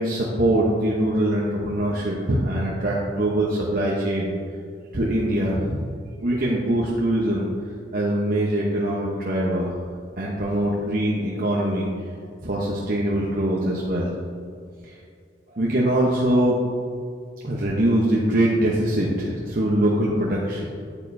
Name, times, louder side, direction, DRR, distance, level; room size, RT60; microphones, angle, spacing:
voice 1, 0.0-4.3 4.9-5.8 6.2-7.5 7.9-9.7 10.2-11.9 12.4-14.1 14.8-14.9 15.5-16.6 17.4-20.7, right 1 dB, 50° right, -5 dB, 1.0 m, -23 dB
8.9 x 8.8 x 2.7 m, 2.2 s
head